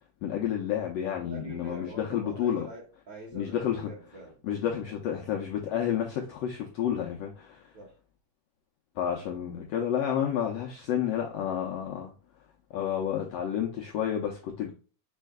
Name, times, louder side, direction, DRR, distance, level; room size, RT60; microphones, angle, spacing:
voice 1, 0.2-2.7 3.3-3.9 4.4-7.6 9.0-12.1 12.7-14.7, left 9 dB, 90° left, 1.4 m, -30 dB
voice 2, 1.2-4.4 7.7-8.0, right 1 dB, 55° right, 1.3 m, -45 dB
5.5 x 4.3 x 2.2 m
omnidirectional pair, 3.8 m